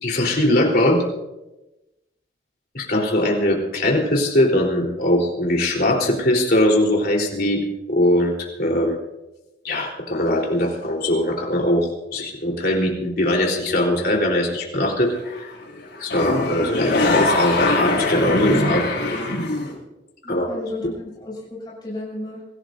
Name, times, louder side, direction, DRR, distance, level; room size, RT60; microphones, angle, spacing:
voice 1, 0.0-1.0 2.7-8.3 8.6-9.0 9.6-15.5 16.0-18.9 20.3-20.5, left 1 dB, 55° left, -1 dB, 3.9 m, -21 dB
sound 1, 15.1-15.5 15.8-19.7, left 2 dB, 80° left, 6.8 m, -21 dB
voice 2, 20.2-22.4, left 2 dB, 25° left, -4 dB, 6.9 m, -33 dB
26.0 x 16.5 x 2.7 m, 1.0 s
head